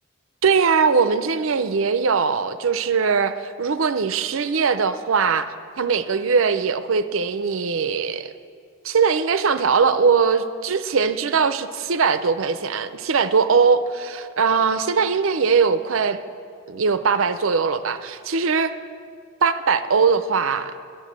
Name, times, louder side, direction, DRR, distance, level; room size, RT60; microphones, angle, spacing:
voice 1, 0.4-8.3 8.8-16.2 16.7-18.7 19.4-20.7, right 5 dB, 75° right, 11 dB, 0.6 m, -21 dB
11.5 x 10.5 x 7.4 m, 2.2 s
head